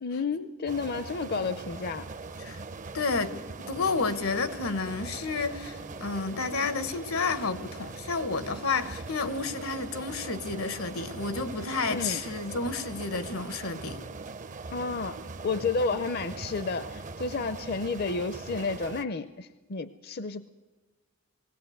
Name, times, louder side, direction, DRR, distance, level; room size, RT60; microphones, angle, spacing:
voice 1, 0.0-2.0 11.9-12.2 14.7-15.2 15.4-20.5, left 4 dB, 50° left, 0.6 m, -31 dB
sound 1, 0.7-19.0, right 3 dB, 35° right, 0.6 m, -41 dB
voice 2, 2.9-14.0, left 4 dB, 85° left, 1.3 m, -31 dB
20.5 x 17.0 x 7.9 m
head